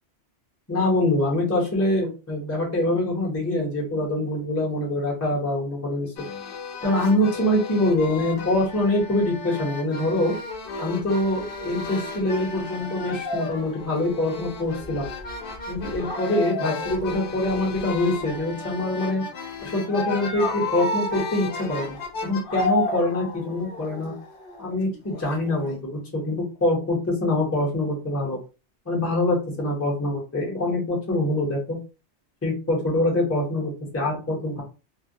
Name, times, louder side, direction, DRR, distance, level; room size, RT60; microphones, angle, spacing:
voice 1, 0.7-6.3 6.8-10.3 10.8-15.1 15.7-19.2 19.6-24.1 24.6-28.4 28.9-31.8 32.4-34.6, left 1 dB, 15° left, -3 dB, 0.6 m, -24 dB
sound 1, 6.2-25.8, left 3 dB, 55° left, 0.8 m, -32 dB
2.3 x 2.1 x 2.7 m, 0.32 s
omnidirectional pair, 1.2 m